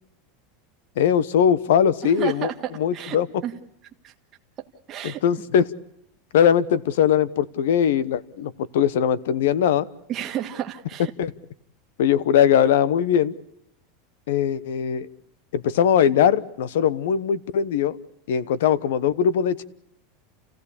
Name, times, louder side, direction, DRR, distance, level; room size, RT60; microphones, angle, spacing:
voice 1, 1.0-2.5 2.8-3.3 5.0-5.6 6.3-9.9 11.2-11.3 12.0-13.3 14.3-15.1 15.5-18.0 18.3-19.6, left 8 dB, 80° left, 20 dB, 1.0 m, -20 dB
voice 2, 2.0-3.5 4.0-4.1 4.6-5.2 10.1-11.1, right 10 dB, 25° right, 4 dB, 1.4 m, -32 dB
28.5 x 16.0 x 8.5 m, 0.81 s
supercardioid pair, 175°, 0 cm